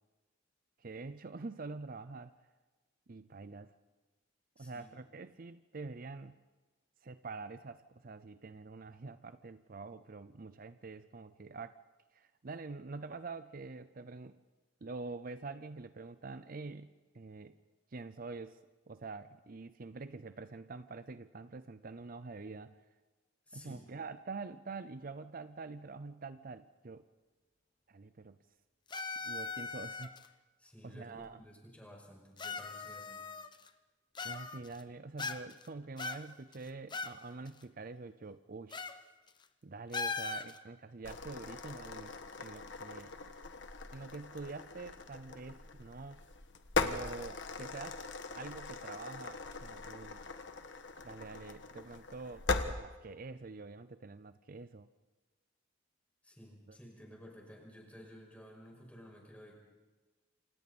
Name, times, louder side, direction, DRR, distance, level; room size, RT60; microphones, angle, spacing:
voice 1, 0.8-2.3 3.1-3.7 4.6-6.3 7.0-11.8 12.1-14.4 14.8-17.6 17.9-18.6 18.9-22.8 23.5-27.1 27.9-28.4 29.2-30.1 30.8-31.4 34.2-38.9 39.6-43.1 43.9-46.3 46.8-48.0 48.4-50.2 51.0-54.9 56.7-56.8, right 3 dB, 50° right, 12 dB, 0.6 m, -46 dB
voice 2, 4.6-4.9 23.5-23.8 30.6-33.3 56.2-59.5, equal, 5° left, -1 dB, 5.8 m, -54 dB
sound 1, 28.9-30.3 31.2-31.3 32.4-33.7 34.1-34.8 35.2-35.7 36.0-37.2 37.5-37.6 38.7-39.0 39.3-39.4 39.9-40.6, left 4 dB, 25° left, 0.9 m, -40 dB
sound 2, 41.0-52.7, left 3 dB, 65° left, 1.5 m, -40 dB
28.0 x 27.0 x 4.3 m, 1.2 s
head